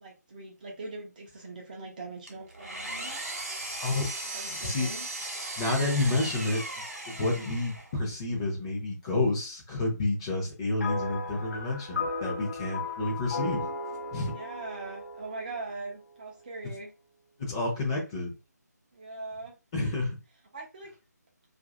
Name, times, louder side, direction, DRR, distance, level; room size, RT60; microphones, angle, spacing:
voice 1, 0.0-3.2 4.3-5.1 12.7-12.9 14.3-16.9 18.9-19.6 20.5-20.9, right 3 dB, 25° right, -1 dB, 0.5 m, -41 dB
Engine, 2.3-8.0, right 2 dB, 55° right, 1.0 m, -37 dB
voice 2, 5.6-6.6 7.0-13.7 14.1-14.3 17.4-18.3 19.7-20.1, left 2 dB, 15° left, -2 dB, 0.7 m, -29 dB
sound 1, 10.8-16.3, left 3 dB, 55° left, 0.8 m, -36 dB
2.7 x 2.5 x 2.5 m, 0.28 s
figure-of-eight pair, 155°, 9 cm